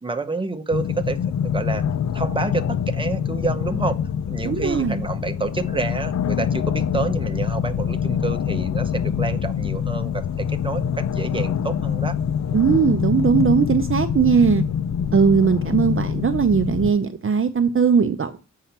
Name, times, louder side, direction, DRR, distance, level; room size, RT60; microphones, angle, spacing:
voice 1, 0.0-1.8 2.1-4.0 4.3-12.2, right 3 dB, 15° right, 7 dB, 0.8 m, -28 dB
sound 1, 0.7-16.9, left 8 dB, 60° left, 0.5 m, -25 dB
voice 2, 4.4-5.0 12.5-14.6 15.1-18.4, right 6 dB, 45° right, 8 dB, 0.6 m, -19 dB
7.4 x 5.7 x 4.2 m, 0.32 s
wide cardioid pair, 110°, 31 cm